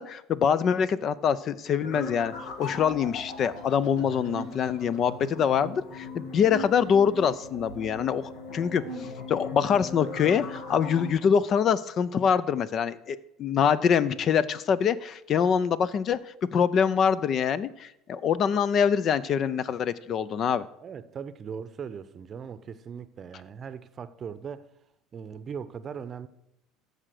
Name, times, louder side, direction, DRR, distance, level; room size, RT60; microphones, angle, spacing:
voice 1, 0.0-8.8 9.3-16.2 16.5-20.7, left 7 dB, 45° left, 0.5 m, -25 dB
sound 1, 1.8-11.1, left 3 dB, 75° left, 1.8 m, -39 dB
voice 2, 20.8-24.7 25.1-26.3, right 7 dB, 40° right, 0.7 m, -39 dB
14.0 x 5.0 x 6.6 m
supercardioid pair, 95°, 0 cm